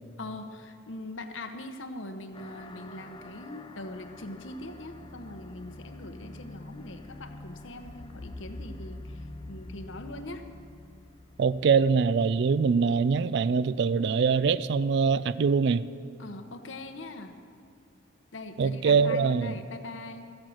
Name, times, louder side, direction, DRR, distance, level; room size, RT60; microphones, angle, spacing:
voice 1, 0.2-10.5 16.2-17.4 18.3-20.3, left 2 dB, 75° left, 7 dB, 1.0 m, -42 dB
sound 1, 2.3-13.3, left 2 dB, 25° left, 0.6 m, -48 dB
sound 2, 7.8-12.7, left 2 dB, 35° right, 1.5 m, -46 dB
voice 2, 11.4-15.8 18.6-19.5, right 5 dB, 60° right, 17 dB, 0.3 m, -23 dB
15.0 x 8.7 x 6.3 m, 2.3 s
head